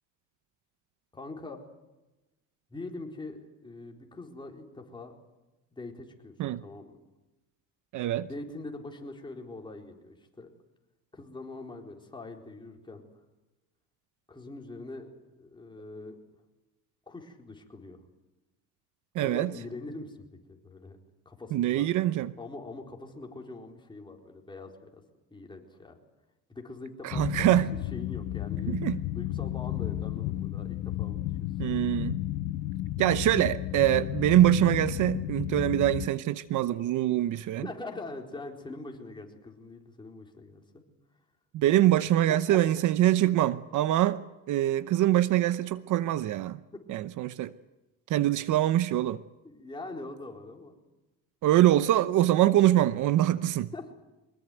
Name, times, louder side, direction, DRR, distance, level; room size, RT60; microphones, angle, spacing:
voice 1, 1.1-1.6 2.7-5.1 5.7-7.0 8.3-10.5 11.1-13.0 14.3-16.2 17.1-18.0 19.2-21.0 21.3-21.9 22.4-25.0 25.3-26.0 26.5-27.4 27.7-28.8 29.1-31.2 37.6-40.8 42.3-42.8 49.4-50.8 53.7-53.9, left 2 dB, 15° left, 4.2 m, -43 dB
voice 2, 7.9-8.3 19.1-19.5 21.5-22.3 27.0-27.7 28.7-29.0 31.6-32.2 33.0-37.7 41.5-44.2 44.5-46.6 46.9-47.5 48.1-49.2 51.4-53.7, right 13 dB, 60° right, 0.9 m, -24 dB
sound 1, 27.1-36.1, left 14 dB, 70° left, 1.1 m, -33 dB
24.0 x 22.0 x 9.3 m
cardioid pair, 130°, 35 cm